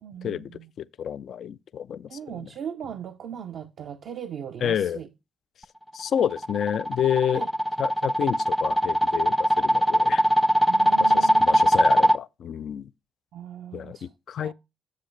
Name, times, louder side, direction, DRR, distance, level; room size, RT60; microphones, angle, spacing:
voice 1, 0.0-0.7 2.1-5.1 7.3-7.5 10.7-11.7 13.3-14.1 14.4-14.5, right 8 dB, 65° right, 0.6 m, -38 dB
voice 2, 0.8-2.1 4.6-5.0 5.9-7.5 7.8-10.2 11.0-12.9 13.7-14.5, left 9 dB, 60° left, 0.3 m, -29 dB
sound 1, 6.0-12.2, equal, ahead, 0.5 m, -21 dB
8.2 x 7.3 x 3.2 m
hypercardioid pair, 45°, 0 cm